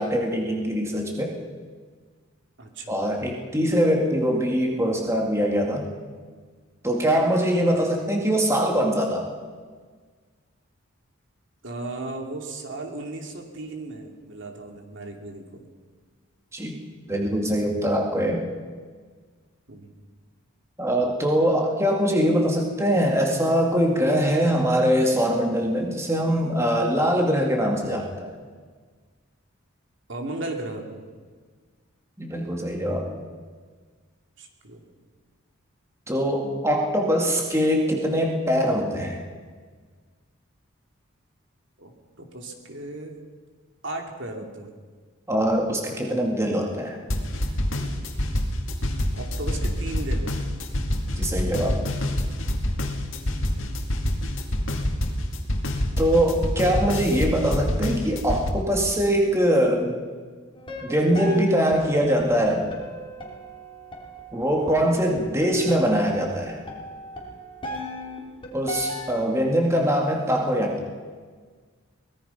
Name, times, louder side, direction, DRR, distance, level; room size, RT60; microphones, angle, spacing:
voice 1, 0.0-1.3 2.9-5.9 6.8-9.3 16.5-16.8 17.1-18.5 20.8-28.4 32.2-33.1 36.1-39.2 45.3-47.0 51.2-51.8 56.0-60.0 60.8-62.7 64.3-66.6 68.5-70.8, equal, 15° right, 0 dB, 2.2 m, -22 dB
voice 2, 2.6-2.9 7.7-7.8 11.6-15.7 19.7-19.9 30.1-31.0 34.4-34.8 41.8-41.9 42.2-43.2 43.8-44.8 49.1-50.5 53.3-53.7 65.2-65.4, right 2 dB, 60° right, 3 dB, 2.8 m, -36 dB
sound 1, 47.1-58.5, left 1 dB, 65° left, 2.4 m, -26 dB
sound 2, 60.5-69.2, equal, 25° left, 3.7 m, -38 dB
23.5 x 19.0 x 5.7 m, 1.6 s
head